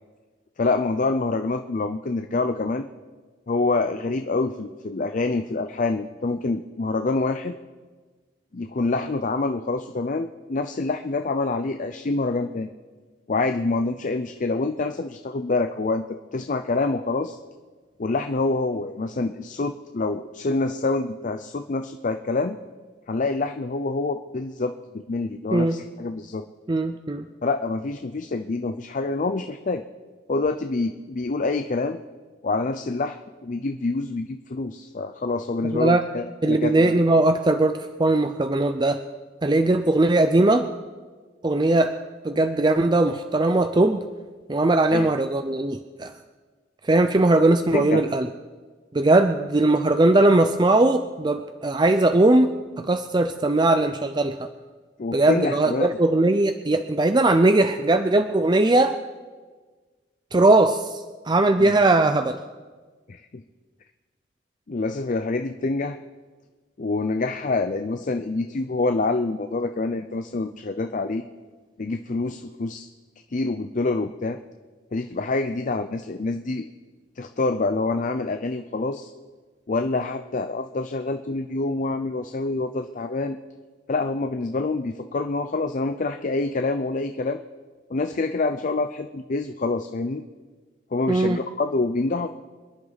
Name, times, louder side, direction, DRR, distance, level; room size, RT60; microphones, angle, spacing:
voice 1, 0.6-2.8 3.5-7.5 8.5-12.7 13.3-16.0 16.3-17.4 18.0-22.6 23.1-26.5 27.4-29.8 30.3-32.0 32.4-37.0 44.9-45.1 47.7-48.0 55.0-55.9 61.6-61.7 63.1-63.4 64.7-66.0 66.8-71.2 71.8-72.9 73.3-74.4 74.9-76.7 77.2-79.1 79.7-83.4 83.9-87.4 87.9-90.2 90.9-92.3, left 3 dB, 40° left, 8 dB, 0.5 m, -26 dB
voice 2, 26.7-27.3 35.6-36.0 36.4-39.0 39.4-40.7 41.4-42.0 42.2-44.0 44.5-46.1 46.8-48.3 48.9-52.5 52.8-54.5 55.1-59.0 60.3-62.4 91.1-91.4, right 2 dB, 25° right, 8 dB, 0.5 m, -20 dB
26.0 x 11.0 x 4.0 m, 1.4 s
head